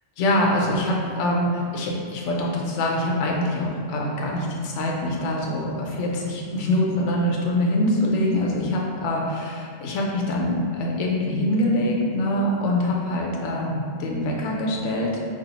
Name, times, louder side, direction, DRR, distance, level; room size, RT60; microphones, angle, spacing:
voice 1, 0.2-15.1, left 1 dB, 80° left, -1 dB, 0.9 m, -24 dB
4.3 x 2.7 x 3.9 m, 2.1 s
omnidirectional pair, 1.2 m